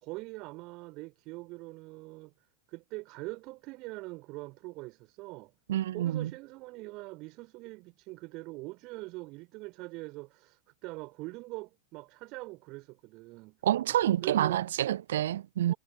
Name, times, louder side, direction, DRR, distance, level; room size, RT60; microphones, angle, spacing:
voice 1, 0.0-2.3 2.7-5.5 5.9-13.6 14.2-14.6 15.7-15.8, right 23 dB, 40° right, 4.2 m, -43 dB
voice 2, 5.7-6.3 13.6-15.7, right 12 dB, 60° right, 0.4 m, -28 dB
figure-of-eight pair, 90°, 0 cm